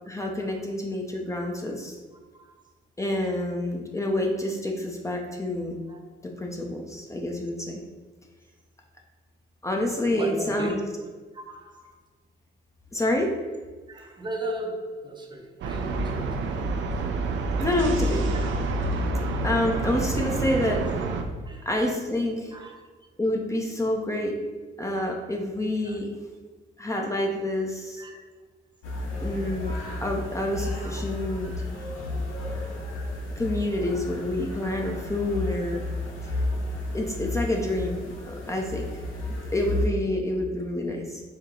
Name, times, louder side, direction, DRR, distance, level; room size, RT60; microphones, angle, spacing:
voice 1, 0.1-1.9 3.0-5.8 6.2-7.8 9.6-10.8 12.9-13.3 17.6-18.3 19.4-20.8 21.7-22.5 23.2-24.4 24.8-26.2 26.8-28.0 29.2-29.7 30.0-31.5 33.4-35.8 36.2-36.3 36.9-38.9 39.3-41.2, left 1 dB, 15° left, 1 dB, 0.6 m, -28 dB
voice 2, 2.1-2.7 5.9-6.1 10.1-10.8 11.3-12.0 13.9-16.5 18.3-19.2 20.4-20.9 21.4-21.7 22.5-22.8 25.0-25.2 25.8-26.0 28.0-28.2 30.8-31.5 36.8-36.9, right 1 dB, 25° right, 1 dB, 0.7 m, -38 dB
sound 1, 15.6-21.2, right 2 dB, 70° right, 0.5 m, -27 dB
sound 2, 28.8-39.9, left 2 dB, 80° left, 1.0 m, -32 dB
4.5 x 2.8 x 3.7 m, 1.4 s
cardioid pair, 90°, 20 cm